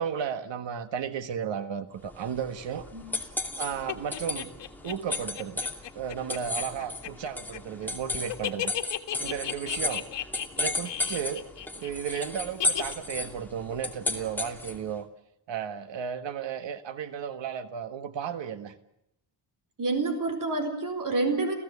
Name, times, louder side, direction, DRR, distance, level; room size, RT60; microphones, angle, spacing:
voice 1, 0.0-2.9 3.6-4.5 4.8-5.6 5.9-8.7 9.2-10.0 10.6-11.5 11.8-15.1 15.5-18.7, right 8 dB, 75° right, 11 dB, 1.7 m, -34 dB
sound 1, 2.1-14.9, left 2 dB, 5° left, 2.6 m, -34 dB
sound 2, 3.9-12.2 12.6-12.9, left 11 dB, 70° left, 1.8 m, -34 dB
voice 2, 19.8-21.6, right 3 dB, 45° right, 8 dB, 4.4 m, -28 dB
29.5 x 16.5 x 8.4 m, 0.83 s
cardioid pair, 135°, 44 cm